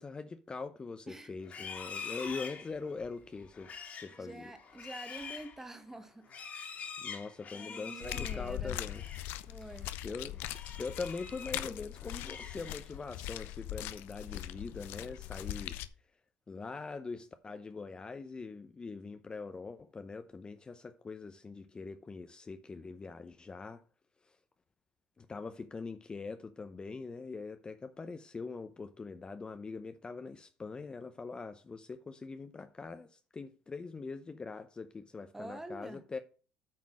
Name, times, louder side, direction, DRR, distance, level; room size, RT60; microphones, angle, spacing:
voice 1, 0.0-4.5 7.0-9.0 10.0-10.4 10.8-15.8 16.5-23.8 24.2-24.4 25.2-36.2, left 4 dB, 25° left, 0.7 m, -43 dB
Livestock farm animals working animals, 1.4-9.3 9.7-10.0 10.4-11.7 12.0-13.0, left 6 dB, 40° left, 2.3 m, -46 dB
voice 2, 4.2-6.6 7.5-8.8 9.5-9.9 35.3-36.0, right 2 dB, 10° right, 1.3 m, -46 dB
sound 1, 8.0-15.9, left 14 dB, 70° left, 0.6 m, -41 dB
8.6 x 4.0 x 6.1 m
supercardioid pair, 80°, 4 cm